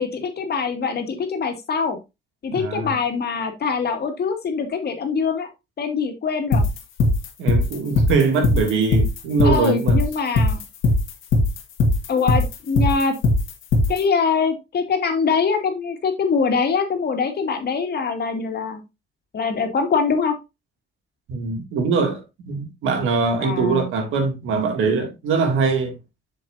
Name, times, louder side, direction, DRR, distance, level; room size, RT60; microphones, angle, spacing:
voice 1, 0.0-2.0 2.4-5.5 5.8-6.6 9.4-10.6 12.1-13.1 13.9-18.8 19.3-20.4 23.4-23.9, left 5 dB, 55° left, 2.1 m, -23 dB
voice 2, 2.5-3.0 7.4-10.0 21.3-25.9, right 4 dB, 85° right, 2.3 m, -22 dB
sound 1, 6.5-14.0, left 2 dB, 85° left, 1.7 m, -18 dB
7.6 x 6.9 x 2.6 m
cardioid pair, 90°, 20 cm